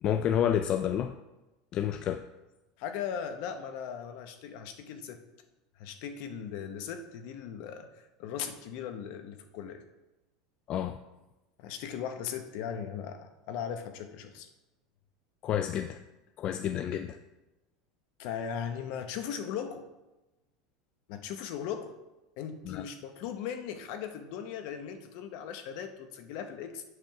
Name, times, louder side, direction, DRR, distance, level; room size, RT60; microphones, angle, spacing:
voice 1, 0.0-1.1 1.7-2.2 10.7-11.0 15.4-16.0 16.4-17.2 22.7-22.8, left 10 dB, 40° left, 9 dB, 0.3 m, -29 dB
voice 2, 2.8-5.2 5.8-7.9 8.2-9.8 11.6-14.5 18.2-19.9 21.1-21.9 22.4-26.8, left 8 dB, 60° left, 8 dB, 0.9 m, -38 dB
8.0 x 3.5 x 5.8 m, 1.0 s
supercardioid pair, 140°, 3 cm